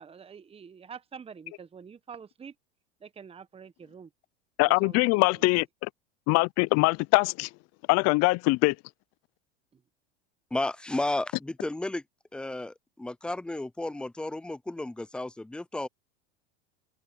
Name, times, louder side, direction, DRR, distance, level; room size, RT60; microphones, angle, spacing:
voice 1, 0.0-2.5 3.0-4.1 4.8-5.1 5.4-5.5, right 6 dB, 20° right, 1.1 m, -46 dB
voice 2, 4.6-5.9 6.3-7.5 7.9-8.8, left 25 dB, 50° left, 0.7 m, -23 dB
voice 3, 10.5-12.0 12.3-15.9, left 2 dB, 5° left, 0.4 m, -33 dB
hypercardioid pair, 95°, 32 cm